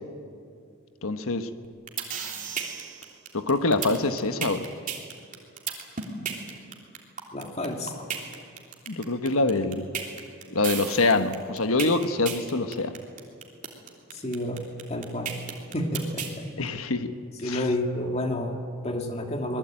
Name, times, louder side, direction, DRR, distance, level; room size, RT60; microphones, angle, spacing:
voice 1, 1.0-1.5 3.3-4.7 8.9-9.9 10.5-13.0 16.6-17.1 17.4-17.6, left 3 dB, 75° left, 9 dB, 1.3 m, -25 dB
sound 1, 1.6-16.3, right 7 dB, 35° right, 3.1 m, -34 dB
voice 2, 7.3-7.9 14.1-14.6 14.9-15.4 15.7-16.5 17.4-19.6, left 1 dB, 30° left, 3 dB, 2.5 m, -30 dB
26.5 x 20.0 x 9.0 m, 2.3 s
head